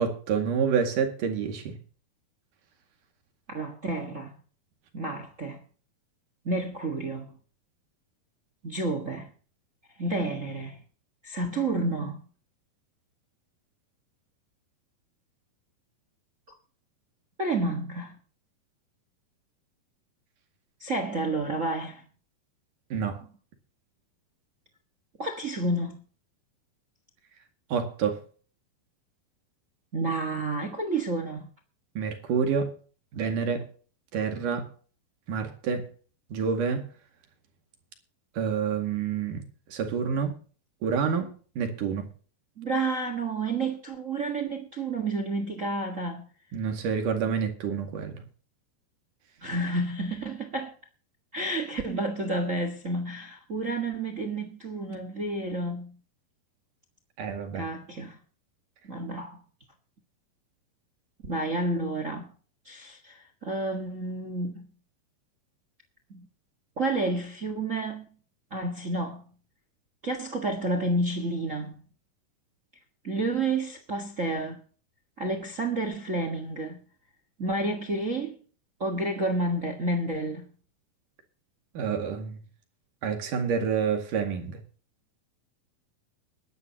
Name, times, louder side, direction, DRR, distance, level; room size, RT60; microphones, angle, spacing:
voice 1, 0.0-1.8 22.9-23.2 27.7-28.2 32.0-32.7 33.1-33.7 34.1-34.7 35.3-35.9 36.3-36.9 38.4-39.4 39.7-40.3 40.8-42.1 46.5-48.2 57.2-57.7 81.8-82.4 83.0-84.6, right 6 dB, 60° right, 3.6 m, -28 dB
voice 2, 3.5-4.3 4.9-5.6 6.4-7.3 8.6-9.3 10.0-10.8 11.2-12.2 17.4-18.2 20.8-22.0 25.2-26.0 29.9-31.5 42.6-46.3 49.4-50.7 51.3-56.0 57.5-58.2 58.8-59.4 61.3-62.3 62.6-64.7 66.1-66.3 66.8-68.1 68.5-69.2 70.0-71.7 73.0-74.6 75.2-76.8 77.4-78.4 78.8-80.5, right 2 dB, 80° right, 0.7 m, -30 dB
21.5 x 11.0 x 2.9 m
omnidirectional pair, 4.3 m